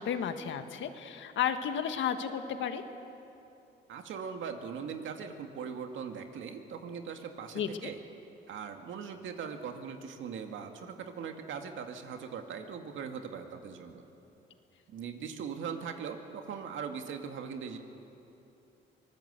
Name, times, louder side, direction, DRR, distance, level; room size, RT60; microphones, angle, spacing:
voice 1, 0.0-2.8 7.5-7.9, left 8 dB, 75° left, 8 dB, 1.6 m, -33 dB
voice 2, 3.9-8.0 8.5-14.0 14.9-17.8, right 6 dB, 75° right, 5 dB, 2.2 m, -40 dB
25.0 x 19.5 x 8.2 m, 2.8 s
cardioid pair, 90°, 20 cm